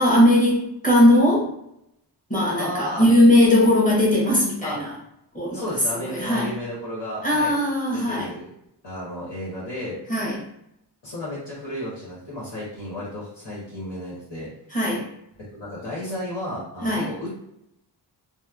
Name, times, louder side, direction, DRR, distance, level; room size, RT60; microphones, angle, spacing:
voice 1, 0.0-1.5 2.3-4.9 5.3-5.6 6.0-6.5 7.2-8.3 10.1-10.4 14.7-15.1 16.8-17.1, left 1 dB, 20° left, -4 dB, 0.9 m, -19 dB
voice 2, 2.6-3.1 4.6-4.8 5.5-7.6 7.9-8.5 8.8-10.0 11.0-14.5 15.5-17.3, left 1 dB, 90° left, -9 dB, 1.2 m, -33 dB
2.8 x 2.0 x 2.4 m, 0.80 s
cardioid pair, 70°, 42 cm